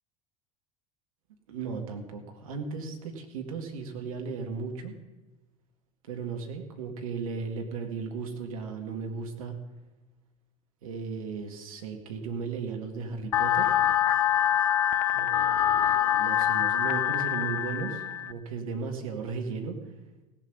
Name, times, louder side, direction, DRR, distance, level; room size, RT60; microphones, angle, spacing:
voice 1, 1.5-4.9 6.1-9.6 10.8-13.8 15.1-19.8, right 5 dB, 70° right, 4 dB, 1.8 m, -36 dB
sound 1, 13.3-18.3, left 10 dB, 65° left, 0.6 m, -25 dB
17.0 x 7.6 x 5.5 m, 1.1 s
figure-of-eight pair, 75°, 19 cm